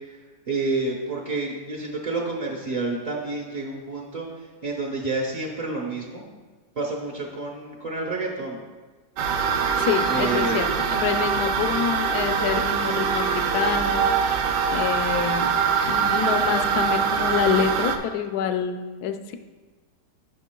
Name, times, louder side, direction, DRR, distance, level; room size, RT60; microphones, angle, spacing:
voice 1, 0.5-4.3 4.6-6.2 6.8-8.6 10.1-10.7, right 3 dB, 40° right, -2 dB, 0.5 m, -29 dB
sound 1, 9.2-18.0, right 6 dB, 80° right, 1.2 m, -23 dB
voice 2, 9.8-15.6 15.9-19.3, left 8 dB, 70° left, 8 dB, 1.0 m, -27 dB
11.0 x 6.5 x 2.2 m, 1.3 s
omnidirectional pair, 1.9 m